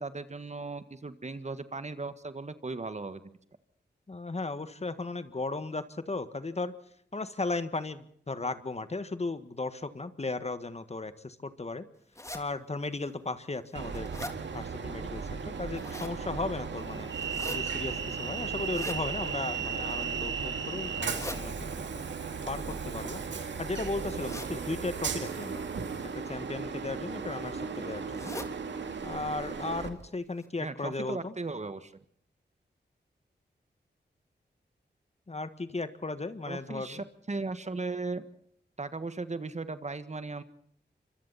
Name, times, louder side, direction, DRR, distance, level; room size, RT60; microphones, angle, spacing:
voice 1, 0.0-3.4 30.6-31.9 36.5-38.2 38.8-40.4, right 3 dB, 40° right, 11 dB, 1.6 m, -37 dB
voice 2, 4.1-6.7 7.1-11.9 12.3-14.1 14.5-17.1 17.5-21.6 22.5-25.6 26.1-28.3 29.0-31.3 35.3-37.0, left 3 dB, 35° left, 11 dB, 1.6 m, -36 dB
sound 1, 12.1-12.4 13.1-13.2 13.6-14.4 15.5-16.2 17.1-17.6 18.6-19.0 19.7-20.2 20.9-21.4 22.5-23.5 24.2-24.5 25.2-25.4 26.5-26.7 27.1-27.2 27.4-27.5 28.1-28.5 28.9-29.0 29.3-29.4 30.0-30.1 30.4-30.5, left 1 dB, 15° left, 3.1 m, -42 dB
Train, 13.7-29.9, right 5 dB, 90° right, 2.3 m, -36 dB
sound 2, 24.1-30.1, right 5 dB, 70° right, 1.6 m, -47 dB
27.5 x 25.0 x 4.2 m, 0.64 s
cardioid pair, 70°, 18 cm